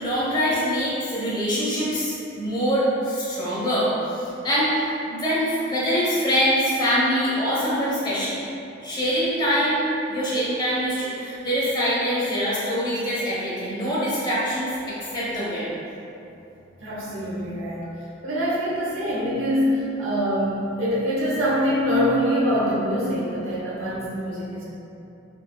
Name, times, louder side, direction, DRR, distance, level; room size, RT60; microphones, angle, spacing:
voice 1, 0.0-8.4 8.8-15.7, equal, 20° left, -8 dB, 1.0 m, -24 dB
voice 2, 16.8-17.8 18.2-24.6, equal, 75° right, -7 dB, 1.0 m, -24 dB
4.3 x 3.5 x 2.3 m, 2.8 s
head